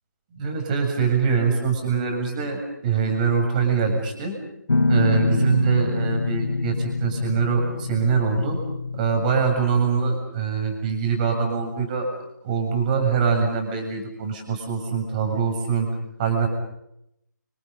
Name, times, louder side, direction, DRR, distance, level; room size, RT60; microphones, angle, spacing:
voice 1, 0.3-4.4 4.9-8.6 8.9-12.1 12.4-15.9 16.2-16.5, right 6 dB, 25° right, 4 dB, 7.4 m, -23 dB
Guitar, 4.7-10.0, left 3 dB, 80° left, 1.6 m, -25 dB
30.0 x 28.0 x 5.5 m, 0.80 s
figure-of-eight pair, 160°, 10 cm